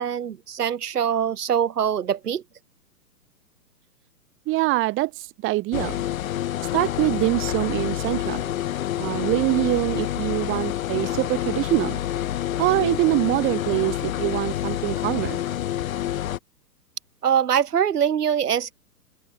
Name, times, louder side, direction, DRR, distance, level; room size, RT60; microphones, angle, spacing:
voice 1, 0.0-2.4 17.2-18.7, right 8 dB, 70° right, 2.7 m, -23 dB
voice 2, 4.5-6.0 6.7-8.5 9.0-12.0 12.6-15.4, right 19 dB, 25° right, 2.3 m, -24 dB
sound 1, 5.7-16.4, left 12 dB, 55° left, 7.7 m, -28 dB
open air
hypercardioid pair, 130°, 49 cm